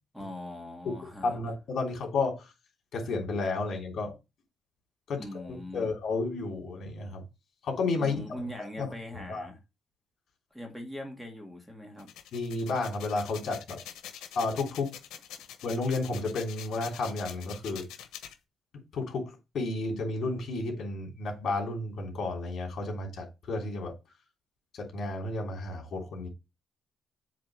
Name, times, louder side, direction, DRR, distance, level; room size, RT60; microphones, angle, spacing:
voice 1, 0.1-1.4 5.2-5.9 8.0-9.6 10.5-12.1, left 1 dB, ahead, 2.0 m, -41 dB
voice 2, 1.2-2.5 2.9-4.1 5.1-7.2 7.6-8.1 8.6-8.9 9.3-9.5 12.3-13.8 14.3-14.9 15.6-17.9 18.9-23.9 24.8-26.3, left 3 dB, 60° left, 3.1 m, -32 dB
sound 1, 12.0-18.3, left 10 dB, 85° left, 1.0 m, -45 dB
7.6 x 3.5 x 6.3 m
cardioid pair, 90°, 0 cm